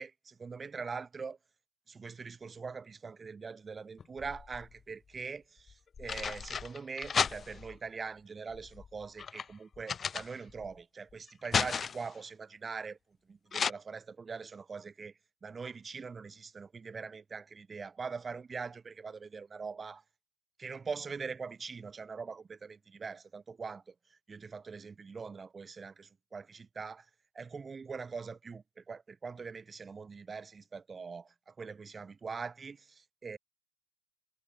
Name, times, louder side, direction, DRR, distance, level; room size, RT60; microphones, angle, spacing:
voice 1, 0.0-1.4 1.9-13.0 13.3-15.1 15.4-20.0 20.6-23.9 24.3-27.0 27.4-33.4, right 5 dB, 15° right, 1.9 m, -42 dB
sound 1, 4.0-4.8 5.7-7.8 8.5-10.7 11.1-12.2 13.5-13.7, left 6 dB, 20° left, 0.8 m, -34 dB
figure-of-eight pair, 90°, 0 cm